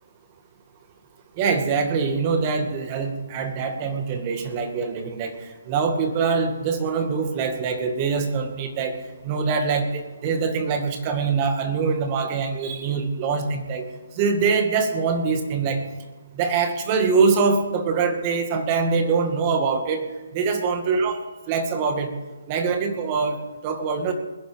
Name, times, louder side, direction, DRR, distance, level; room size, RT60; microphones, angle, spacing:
voice 1, 1.4-5.3 5.7-9.0 9.2-13.8 14.2-15.8 16.3-20.0 20.3-21.2 21.5-22.1 22.5-23.4 23.6-24.1, right 5 dB, 30° right, 6 dB, 2.1 m, -23 dB
21.0 x 10.5 x 5.2 m, 1.2 s
hypercardioid pair, 150°, 0 cm